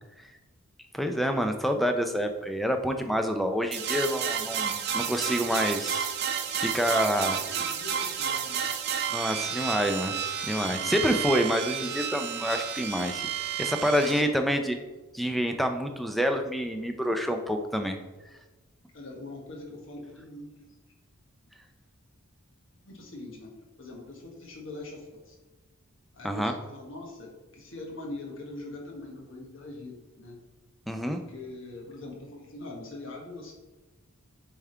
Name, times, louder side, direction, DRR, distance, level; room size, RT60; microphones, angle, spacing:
voice 1, 0.9-6.1 6.6-7.4 9.1-10.2 10.4-13.3 13.6-14.8 15.1-18.0 26.2-26.5 30.9-31.2, equal, ahead, 5 dB, 0.4 m, -27 dB
sound 1, 3.7-14.2, right 8 dB, 45° right, 0.5 m, -31 dB
voice 2, 7.2-8.8 13.8-14.4 18.9-20.5 22.7-23.5 23.8-25.4 26.1-30.4 31.0-33.5, left 2 dB, 60° left, -1 dB, 1.4 m, -43 dB
7.1 x 3.5 x 4.4 m, 1.2 s
head